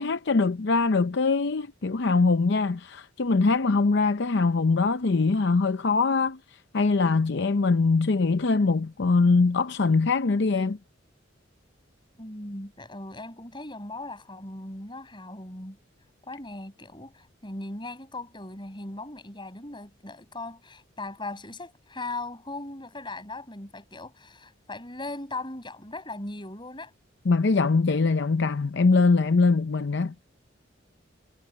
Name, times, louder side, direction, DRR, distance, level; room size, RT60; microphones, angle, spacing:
voice 1, 0.0-6.4 6.7-10.8 27.3-30.1, left 4 dB, 60° left, 0.6 m, -22 dB
voice 2, 12.2-15.8 16.2-26.9, left 2 dB, 25° left, 7.7 m, -38 dB
head